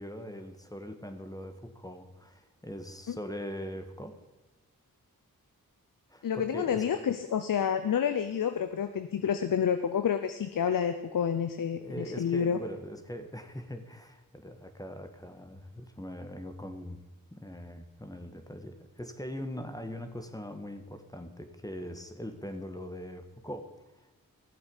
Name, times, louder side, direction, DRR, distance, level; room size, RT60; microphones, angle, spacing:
voice 1, 0.0-4.2 6.1-6.8 11.8-17.0 17.3-24.1, equal, 10° left, 7 dB, 1.5 m, -41 dB
voice 2, 6.2-12.6, left 8 dB, 65° left, 9 dB, 0.7 m, -29 dB
14.5 x 8.0 x 5.5 m, 1.1 s
cardioid pair, 50°, 35 cm